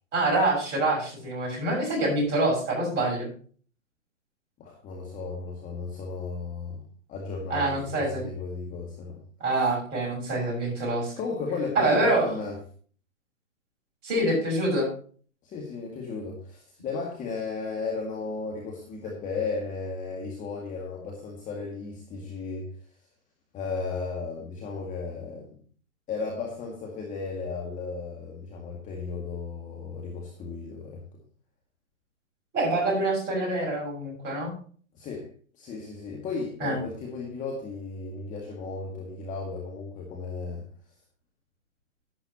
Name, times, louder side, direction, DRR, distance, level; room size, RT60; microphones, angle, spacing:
voice 1, 0.1-3.3 7.5-8.2 9.4-11.1 11.7-12.3 14.0-14.9 32.5-34.5 36.6-36.8, right 2 dB, 25° right, -1 dB, 6.6 m, -25 dB
voice 2, 4.6-6.8 7.1-9.2 11.2-12.6 15.4-22.7 23.5-25.5 26.1-31.0 35.0-35.3 35.6-40.6, left 4 dB, 20° left, -1 dB, 2.1 m, -35 dB
11.5 x 11.0 x 3.0 m, 0.44 s
hypercardioid pair, 130°, 41 cm